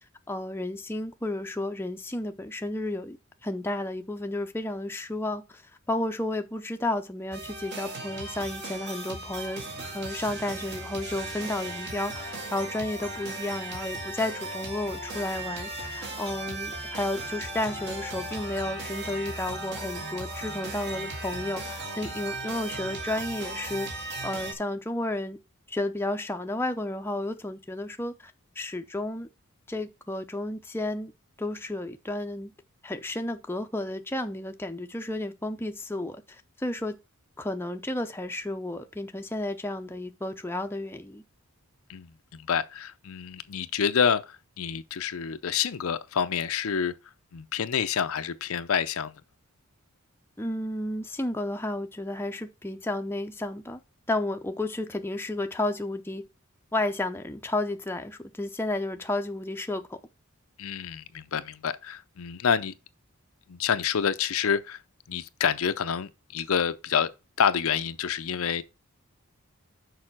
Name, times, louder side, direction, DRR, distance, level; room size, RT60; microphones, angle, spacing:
voice 1, 0.3-3.2 3.4-5.6 5.9-9.6 9.9-23.9 24.2-25.4 25.7-29.3 29.7-31.1 31.4-32.5 32.8-36.9 37.4-41.2 50.4-53.8 54.1-56.2 56.7-60.0, left 1 dB, 10° left, 0.6 m, -32 dB
sound 1, 7.3-24.5, right 2 dB, 50° right, 1.9 m, -37 dB
voice 2, 41.9-46.9 47.3-49.1 60.6-62.7 63.5-64.8 65.1-67.1 67.4-68.6, left 7 dB, 70° left, 0.5 m, -28 dB
6.6 x 4.8 x 5.9 m
head